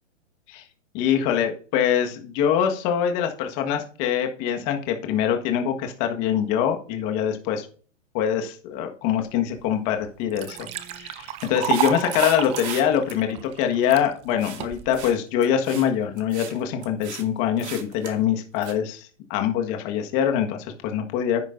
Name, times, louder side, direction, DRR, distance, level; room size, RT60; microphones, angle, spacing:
voice 1, 0.9-7.7 8.1-21.4, left 9 dB, 35° left, 4 dB, 1.6 m, -24 dB
Liquid, 9.6-9.7 10.0-14.1 14.6-15.1, right 12 dB, 15° right, 0.5 m, -30 dB
sound 1, 11.4-12.8 13.1-13.2 14.4-14.7 14.9-15.1 15.4-15.9 16.2-16.6 16.8-17.2 17.6-18.1 18.6-18.7, right 9 dB, 60° right, 2.4 m, -36 dB
10.5 x 9.6 x 2.6 m, 0.41 s
hypercardioid pair, 135°, 38 cm